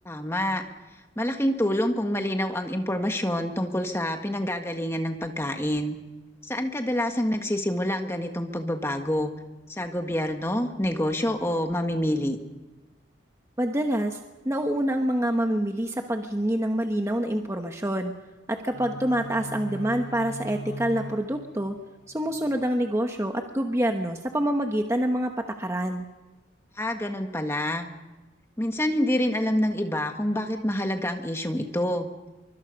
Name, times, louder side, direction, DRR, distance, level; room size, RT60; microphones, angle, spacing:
voice 1, 0.0-0.6 1.1-5.9 6.4-9.3 9.8-12.4 26.7-27.9 28.6-32.1, left 1 dB, 15° left, 5 dB, 1.7 m, -27 dB
voice 2, 13.6-14.2 14.4-18.1 18.5-21.8 22.1-25.3 25.6-26.0, right 1 dB, 15° right, 4 dB, 1.1 m, -26 dB
sound 1, 18.7-22.7, right 1 dB, 75° left, 7.4 m, -40 dB
24.0 x 24.0 x 5.3 m, 1.1 s
head